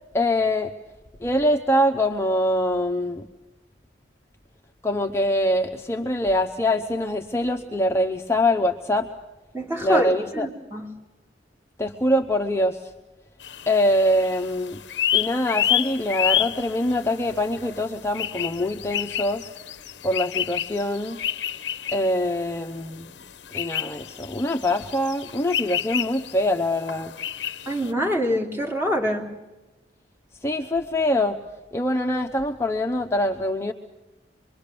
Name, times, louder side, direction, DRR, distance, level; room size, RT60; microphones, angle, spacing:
voice 1, 0.1-0.7 1.2-3.3 4.8-9.1 9.8-10.5 11.8-12.8 13.7-14.8 15.1-19.5 20.0-21.2 21.9-23.1 23.5-27.1 30.4-31.4 31.7-33.7, left 1 dB, 15° left, 3 dB, 0.8 m, -24 dB
voice 2, 9.5-10.9 27.7-29.3, equal, 15° right, 0 dB, 3.0 m, -25 dB
sound 1, 13.4-27.9, left 11 dB, 70° left, 0.7 m, -29 dB
26.0 x 23.0 x 6.9 m, 1.1 s
head